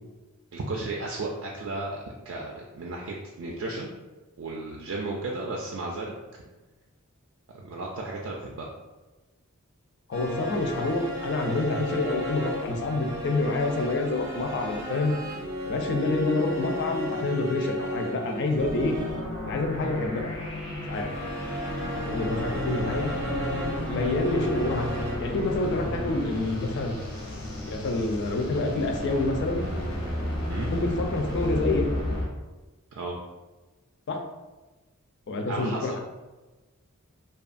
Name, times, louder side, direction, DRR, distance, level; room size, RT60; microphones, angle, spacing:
voice 1, 0.5-3.9 4.4-6.1 7.5-8.7 30.5-30.7 33.0-33.1 35.5-36.0, right 2 dB, 60° right, -2 dB, 0.3 m, -34 dB
voice 2, 10.1-15.1 15.6-19.0 19.4-20.3 20.9-21.1 22.0-23.1 23.9-24.9 25.2-27.0 27.7-29.6 30.5-31.9 34.1-34.2 35.3-36.0, left 2 dB, 55° left, 3 dB, 0.4 m, -27 dB
sound 1, 10.1-19.4 20.9-25.1, equal, 15° right, 0.6 m, -34 dB
sound 2, 18.6-32.3, left 1 dB, 85° left, 0.7 m, -32 dB
2.7 x 2.3 x 2.4 m, 1.2 s
head